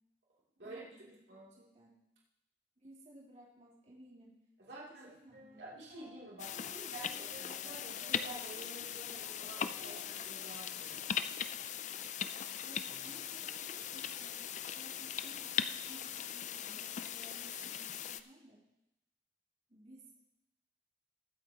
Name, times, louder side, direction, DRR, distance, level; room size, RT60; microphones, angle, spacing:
voice 1, 0.6-1.9 2.8-4.3 4.7-5.6 6.5-7.2 12.6-14.4 14.7-18.6 19.7-20.2, right 1 dB, 40° right, -7 dB, 3.5 m, -57 dB
voice 2, 4.6-5.1 5.6-7.1 7.4-11.1, right 2 dB, 85° right, -6 dB, 3.0 m, -50 dB
sound 1, 5.3-11.7 12.2-12.3 12.8-15.4, equal, 55° right, 4.4 m, -58 dB
sound 2, 6.4-18.2, left 8 dB, 45° left, 0.4 m, -40 dB
21.5 x 8.4 x 3.0 m, 0.91 s
head